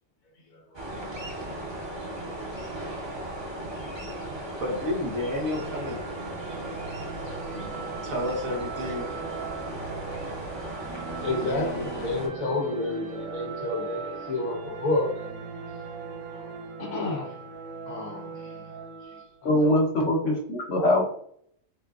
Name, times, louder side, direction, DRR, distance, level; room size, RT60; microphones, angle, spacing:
voice 1, 0.5-0.8 2.1-3.5 4.0-4.6 7.6-8.1 9.0-9.1 10.2-10.3 10.9-15.2 16.3-16.5 16.8-17.4 17.9-19.8, left 2 dB, 85° left, 1.5 m, -32 dB
sound 1, 0.7-12.3, right 1 dB, 25° right, 0.8 m, -36 dB
voice 2, 4.6-6.0 7.5-7.7 8.0-9.1, left 1 dB, 85° right, 1.6 m, -31 dB
sound 2, 5.5-19.4, right 5 dB, 65° right, 1.1 m, -39 dB
voice 3, 19.4-21.0, left 1 dB, 60° left, 1.3 m, -22 dB
4.5 x 3.6 x 2.4 m
omnidirectional pair, 1.4 m